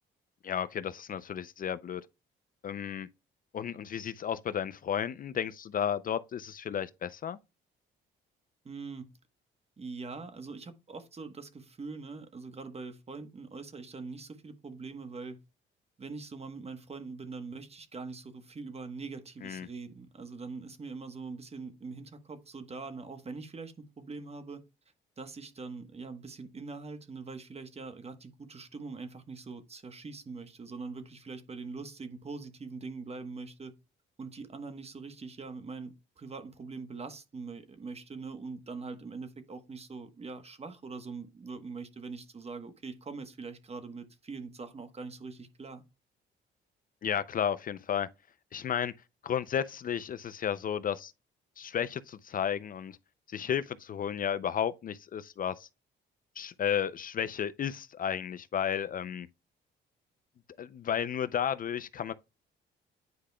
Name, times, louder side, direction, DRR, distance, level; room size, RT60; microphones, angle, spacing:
voice 1, 0.4-2.0 2.6-3.1 3.5-7.4 19.4-19.7 47.0-48.1 48.5-48.9 49.2-51.1 51.6-53.0 53.3-55.7 56.4-59.3 60.6-62.1, left 8 dB, 45° left, 0.4 m, -33 dB
voice 2, 8.6-9.1 9.8-15.4 16.0-24.6 25.2-33.7 34.2-45.8, right 4 dB, 30° right, 1.1 m, -43 dB
9.5 x 4.9 x 2.2 m
cardioid pair, 90°, 20 cm